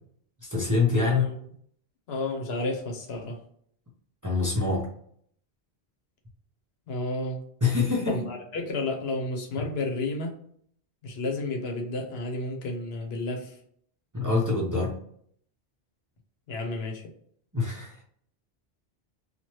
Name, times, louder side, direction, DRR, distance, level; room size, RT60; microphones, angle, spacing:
voice 1, 0.4-1.2 4.2-4.9 7.6-8.2 9.6-9.7 14.1-14.9 17.5-18.0, left 4 dB, 20° right, -3 dB, 0.6 m, -25 dB
voice 2, 0.9-1.4 2.1-3.4 6.9-7.4 8.1-10.3 11.0-13.6 16.5-17.1, left 2 dB, 75° left, 2 dB, 0.9 m, -31 dB
2.9 x 2.3 x 3.0 m, 0.63 s
omnidirectional pair, 1.1 m